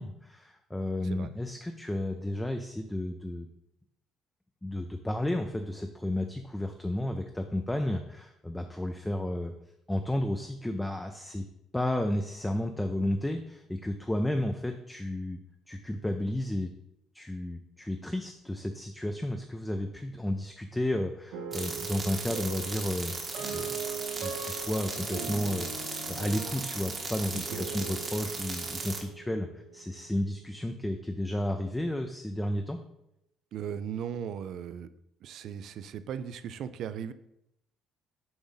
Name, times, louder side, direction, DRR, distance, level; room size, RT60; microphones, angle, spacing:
voice 1, 0.0-3.5 4.6-9.5 9.9-11.4 11.7-15.4 15.7-16.7 17.1-23.1 23.5-23.7 24.1-32.8, left 1 dB, 5° left, 5 dB, 0.4 m, -32 dB
sound 1, 21.3-30.5, right 6 dB, 85° right, 1.0 m, -41 dB
weird cosmic sound, 21.5-29.0, right 3 dB, 30° right, 0.9 m, -37 dB
voice 2, 33.5-34.9 35.2-37.1, right 8 dB, 60° right, 13 dB, 0.4 m, -37 dB
7.0 x 2.6 x 5.5 m, 0.82 s
cardioid pair, 125°, 0 cm